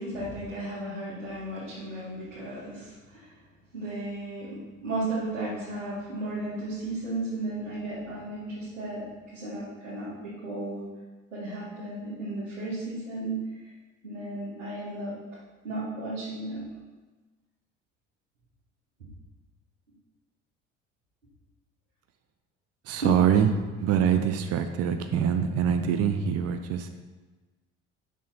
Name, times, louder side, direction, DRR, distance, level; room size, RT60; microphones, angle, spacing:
voice 1, 0.0-3.3 3.7-9.1 9.3-10.8 11.3-13.4 14.0-15.1 15.6-16.6 23.0-23.1, right 2 dB, 80° right, -11 dB, 2.4 m, -34 dB
voice 2, 22.8-23.5 23.8-26.9, right 8 dB, 40° right, 7 dB, 0.8 m, -24 dB
8.3 x 6.5 x 4.4 m, 1.3 s
figure-of-eight pair, 60°, 37 cm